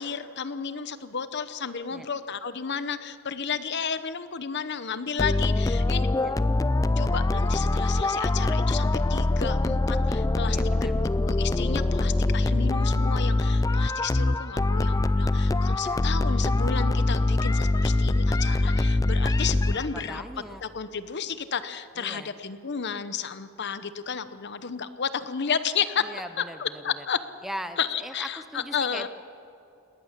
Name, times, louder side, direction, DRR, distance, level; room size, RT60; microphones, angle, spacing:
voice 1, 0.0-6.3 7.0-10.9 11.3-20.2 20.6-26.1 26.4-27.2 27.8-29.1, left 6 dB, 50° left, 12 dB, 0.9 m, -32 dB
sound 1, 5.2-20.1, left 2 dB, 15° left, 0.4 m, -24 dB
voice 2, 10.5-11.0 15.8-16.0 19.7-20.6 22.0-22.3 26.0-27.0 27.4-29.1, equal, ahead, 9 dB, 0.7 m, -40 dB
21.0 x 19.0 x 7.4 m, 2.9 s
head